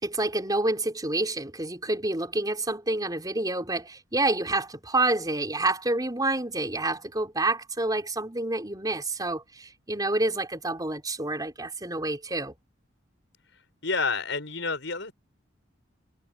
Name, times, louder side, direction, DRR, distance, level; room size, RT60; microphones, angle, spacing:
voice 1, 0.0-12.5, right 2 dB, 20° right, 4.6 m, -28 dB
voice 2, 13.8-15.1, left 4 dB, 70° left, 7.7 m, -29 dB
head